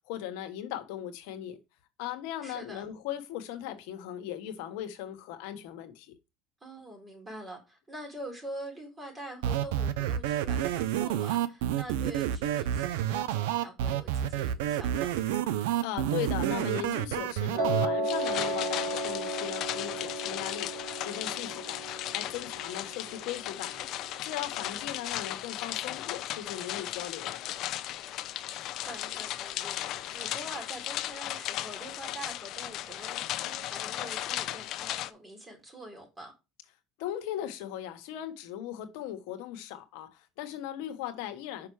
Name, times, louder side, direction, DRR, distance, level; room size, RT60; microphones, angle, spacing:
voice 1, 0.1-1.6 2.0-6.1 15.8-21.8 22.1-27.4 37.0-41.7, left 11 dB, 80° left, 1.2 m, -38 dB
voice 2, 2.4-2.8 6.6-15.2 24.5-24.9 28.8-36.3, right 1 dB, 20° right, 4.1 m, -45 dB
sound 1, 9.4-17.9, right 11 dB, 90° right, 0.7 m, -29 dB
Piano, 17.6-23.7, right 1 dB, 65° right, 4.0 m, -34 dB
sound 2, 18.1-35.1, left 13 dB, 55° left, 0.6 m, -36 dB
5.9 x 5.5 x 4.7 m
supercardioid pair, 115°, 0 cm